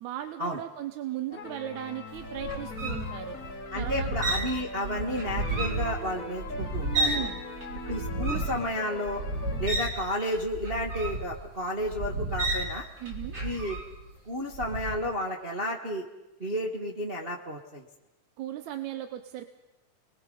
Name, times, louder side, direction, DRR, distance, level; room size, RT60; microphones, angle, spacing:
voice 1, 0.0-3.4 3.8-4.1 7.0-7.4 13.0-13.4 18.4-19.5, right 12 dB, 70° right, 9 dB, 2.1 m, -37 dB
sound 1, 1.3-9.8, left 3 dB, 30° left, 1.9 m, -40 dB
sound 2, 2.1-7.3 7.6-14.1 14.5-14.9, right 2 dB, 30° right, 3.4 m, -32 dB
voice 2, 3.7-7.3 7.8-9.2 9.6-12.8 13.4-13.8 14.3-16.0 16.4-17.8, equal, 50° right, 0 dB, 0.7 m, -32 dB
29.5 x 21.0 x 5.4 m, 0.99 s
omnidirectional pair, 3.8 m